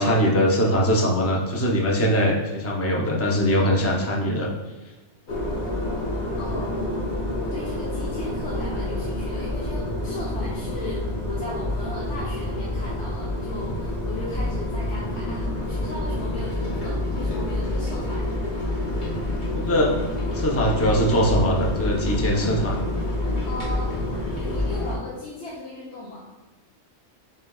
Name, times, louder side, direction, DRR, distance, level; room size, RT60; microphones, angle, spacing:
voice 1, 0.0-4.5 19.5-19.9 20.3-22.8, equal, 20° left, -1 dB, 0.4 m, -21 dB
sound 1, 5.3-25.0, left 1 dB, 45° left, 0.7 m, -28 dB
voice 2, 6.4-7.1 7.4-18.3 23.4-23.9 24.3-26.3, left 2 dB, 65° left, -6 dB, 1.0 m, -37 dB
6.7 x 2.8 x 2.3 m, 1.2 s
omnidirectional pair, 1.2 m